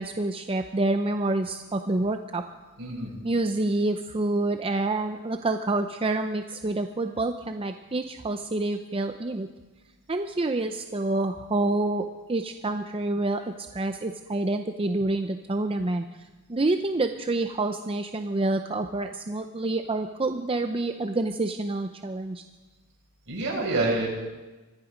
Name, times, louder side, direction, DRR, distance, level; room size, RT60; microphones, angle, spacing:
voice 1, 0.0-2.4 3.2-9.5 10.1-13.4 13.7-16.0 16.5-22.4, right 2 dB, 25° right, 6 dB, 0.6 m, -27 dB
voice 2, 2.8-3.1 23.3-24.1, right 2 dB, 60° right, -4 dB, 6.8 m, -27 dB
24.0 x 11.0 x 5.1 m, 1.2 s
head